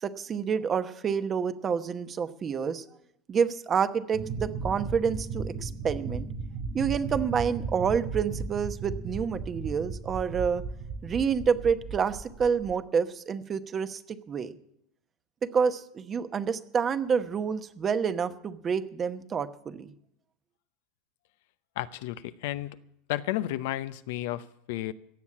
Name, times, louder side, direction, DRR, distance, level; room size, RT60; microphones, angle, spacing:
voice 1, 0.0-2.8 3.3-6.3 6.7-10.7 11.0-14.5 15.4-19.9, right 6 dB, 30° right, 11 dB, 1.0 m, -28 dB
sound 1, 4.1-12.7, right 4 dB, 60° right, 3.9 m, -36 dB
voice 2, 21.8-22.7 23.1-24.9, left 14 dB, 70° left, 13 dB, 0.6 m, -32 dB
16.5 x 7.2 x 8.5 m, 0.76 s
hypercardioid pair, 105°, 0 cm